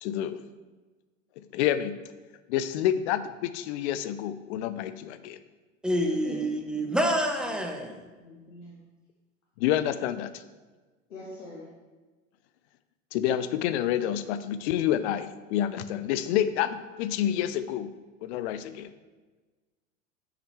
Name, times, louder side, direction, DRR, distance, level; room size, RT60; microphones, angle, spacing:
voice 1, 0.0-0.4 1.5-2.0 2.5-5.4 9.6-10.3 13.1-17.9 18.2-18.9, left 11 dB, 55° left, 0.6 m, -28 dB
voice 2, 5.8-8.0, equal, ahead, 0.8 m, -27 dB
voice 3, 8.2-8.8 11.1-11.7 18.6-18.7, left 2 dB, 80° left, 1.2 m, -43 dB
6.6 x 5.8 x 3.2 m
hypercardioid pair, 85°, 39 cm